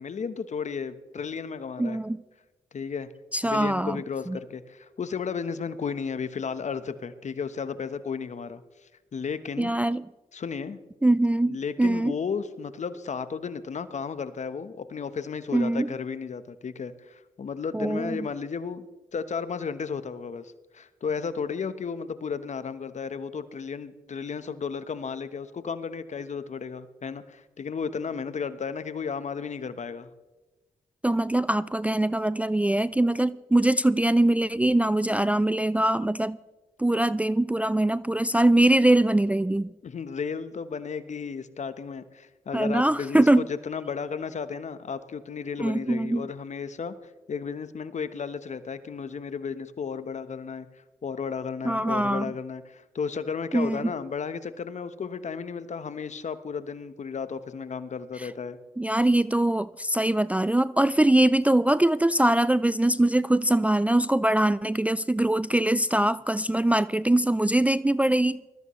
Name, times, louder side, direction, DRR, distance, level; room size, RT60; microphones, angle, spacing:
voice 1, 0.0-2.0 2.7-3.1 3.4-8.6 9.1-9.7 10.3-10.8 11.5-18.8 19.1-30.1 39.8-46.9 47.3-50.7 51.0-58.6, left 6 dB, 55° left, 1.1 m, -34 dB
voice 2, 1.8-2.2 3.3-4.0 4.3-4.4 9.6-10.1 11.0-12.2 15.5-15.9 17.7-18.3 31.0-36.4 36.8-39.7 42.5-43.5 45.6-46.3 51.6-52.3 53.5-53.9 58.2-58.3 58.8-68.4, right 1 dB, 10° right, 0.3 m, -23 dB
20.0 x 13.5 x 3.1 m
supercardioid pair, 50°, 14 cm